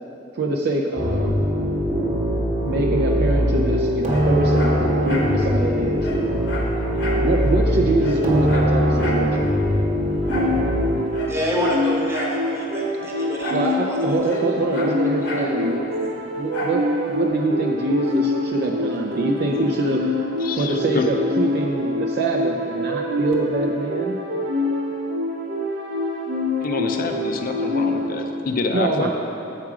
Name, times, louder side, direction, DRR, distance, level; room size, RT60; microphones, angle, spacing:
voice 1, 0.3-1.4 2.6-4.8 5.1-6.1 7.1-9.4 13.5-15.8 16.4-20.0 20.5-24.2 28.7-29.1, right 2 dB, 60° right, 0 dB, 0.4 m, -24 dB
sound 1, 1.0-11.0, equal, 40° right, 1.0 m, -21 dB
Dog, 4.1-5.4 5.7-5.8 6.0-7.3 7.6-7.7 8.0-9.3 10.3-10.6 11.1-12.4 13.4-13.7 14.0-15.5 16.5-16.8 17.3-17.4, left 1 dB, 65° left, 0.9 m, -32 dB
sound 2, 10.2-28.3, left 1 dB, 80° right, 0.8 m, -26 dB
voice 2, 11.2-14.2 15.5-15.6, equal, 15° right, -4 dB, 1.0 m, -27 dB
voice 3, 20.4-21.1 26.6-29.1, left 3 dB, 50° left, 5 dB, 0.5 m, -27 dB
7.5 x 4.8 x 4.8 m, 2.8 s
head